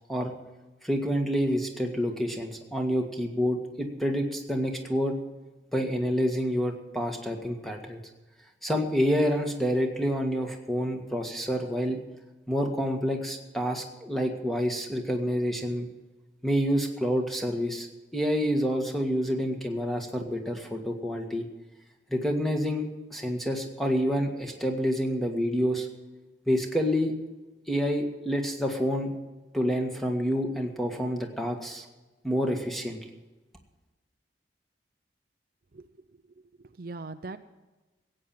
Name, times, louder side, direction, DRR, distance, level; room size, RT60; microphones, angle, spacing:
voice 1, 0.8-5.2 5.7-8.0 8.6-12.0 12.5-15.9 16.4-17.9 18.1-21.4 22.1-25.9 26.5-27.1 27.7-29.1 29.5-31.8 32.2-33.0, equal, ahead, 3 dB, 1.7 m, -28 dB
voice 2, 35.7-36.2 36.6-37.4, right 3 dB, 50° right, 9 dB, 0.6 m, -41 dB
15.5 x 8.8 x 7.6 m, 1.1 s
head